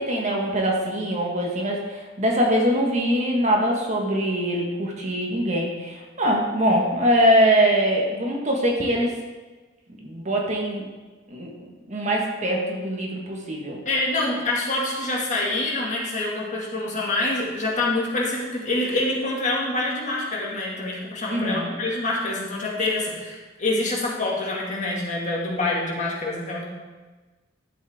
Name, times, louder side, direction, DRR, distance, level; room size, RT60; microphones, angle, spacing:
voice 1, 0.0-9.1 10.0-10.8 11.3-13.8 21.3-21.7, equal, 40° right, -1 dB, 1.6 m, -23 dB
voice 2, 13.9-26.6, left 2 dB, 40° left, -4 dB, 2.2 m, -26 dB
11.5 x 7.4 x 3.7 m, 1.3 s
head